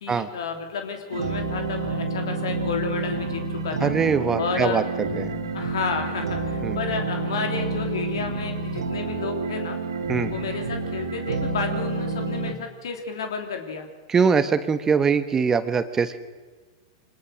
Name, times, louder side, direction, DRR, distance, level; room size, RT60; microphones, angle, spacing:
voice 1, 0.0-3.9 4.4-4.9 5.5-9.8 10.3-13.9, left 5 dB, 70° left, 4 dB, 3.0 m, -31 dB
sound 1, 1.1-12.5, right 3 dB, 80° right, 2.9 m, -29 dB
voice 2, 3.8-4.8 5.1-5.3 6.6-6.8 10.1-10.3 14.1-16.2, right 5 dB, 20° right, 12 dB, 1.2 m, -22 dB
25.5 x 20.0 x 6.4 m, 1.3 s
hypercardioid pair, 105°, 3 cm